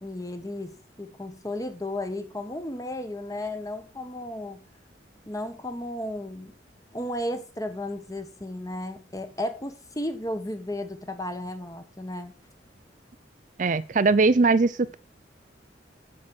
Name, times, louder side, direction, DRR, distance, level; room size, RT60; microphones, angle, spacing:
voice 1, 0.0-4.6 5.3-6.5 6.9-12.3, left 1 dB, 20° left, 1.4 m, -34 dB
voice 2, 13.6-15.0, right 3 dB, 45° right, 0.5 m, -20 dB
8.7 x 7.5 x 6.3 m
head